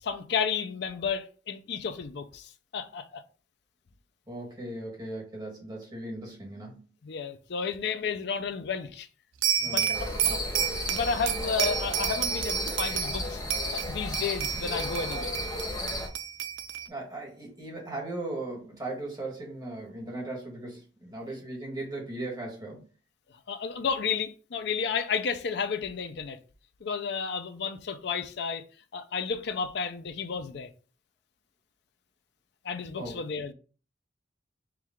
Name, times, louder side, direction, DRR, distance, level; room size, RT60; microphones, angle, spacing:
voice 1, 0.0-3.2 7.0-9.1 9.6-9.9 10.2-10.4 10.9-13.4 13.7-15.4 23.5-26.4 26.8-28.6 28.9-30.7 32.6-33.5, left 5 dB, 65° left, 0.5 m, -32 dB
voice 2, 4.3-6.8 9.6-10.5 16.9-22.8 33.0-33.2, right 2 dB, 20° right, 1.5 m, -38 dB
sound 1, 9.4-13.2 13.5-16.9, right 9 dB, 85° right, 0.4 m, -31 dB
sound 2, 9.9-16.1, left 1 dB, 20° left, 0.8 m, -34 dB
4.6 x 2.4 x 3.6 m
head